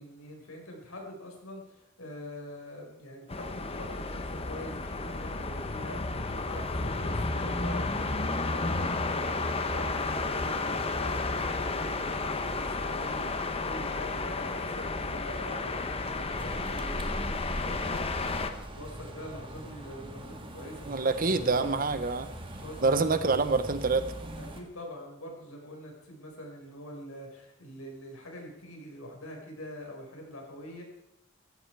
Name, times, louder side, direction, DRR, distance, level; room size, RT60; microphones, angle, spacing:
voice 1, 0.0-18.1 18.7-21.7 22.6-23.4 24.3-30.8, left 1 dB, 80° left, 1 dB, 5.1 m, -44 dB
sound 1, 3.3-18.5, left 3 dB, 25° left, 1.1 m, -32 dB
sound 2, 16.4-24.6, right 1 dB, 25° right, 1.8 m, -43 dB
voice 2, 20.9-22.3 22.8-24.1, right 3 dB, 40° right, 12 dB, 1.0 m, -26 dB
16.0 x 16.0 x 4.7 m, 0.86 s
head